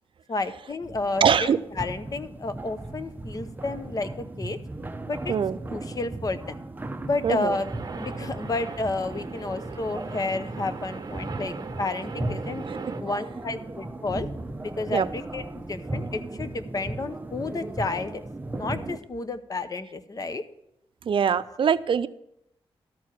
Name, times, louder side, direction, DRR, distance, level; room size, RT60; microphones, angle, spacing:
voice 1, 0.3-1.5 1.8-4.6 5.1-5.3 5.7-6.6 7.1-7.7 8.0-12.6 13.0-14.3 14.8-18.2 18.6-20.4, left 3 dB, 40° left, 11 dB, 0.8 m, -31 dB
sound 1, 0.8-19.0, right 2 dB, 20° right, 0.7 m, -36 dB
voice 2, 1.2-1.6 5.3-5.6 7.2-7.6 14.9-15.1 21.0-22.1, right 7 dB, 60° right, 13 dB, 0.5 m, -22 dB
sound 2, 7.5-13.0, right 4 dB, 40° right, 1.1 m, -39 dB
13.0 x 4.7 x 8.5 m, 0.79 s
wide cardioid pair, 115°, 10 cm